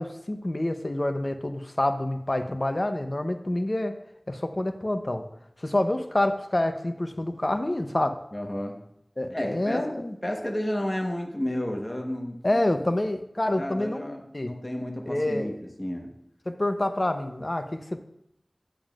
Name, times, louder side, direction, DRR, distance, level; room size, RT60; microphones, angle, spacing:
voice 1, 0.0-4.0 4.3-5.3 5.6-8.2 9.2-10.1 12.4-14.1 14.3-14.5 15.1-15.6 16.5-18.0, left 1 dB, 45° left, 7 dB, 0.6 m, -27 dB
voice 2, 8.3-8.8 9.3-9.9 10.2-12.3 13.5-16.1, left 1 dB, 30° left, 2 dB, 1.1 m, -31 dB
9.0 x 7.0 x 2.4 m, 0.77 s
wide cardioid pair, 50°, 0 cm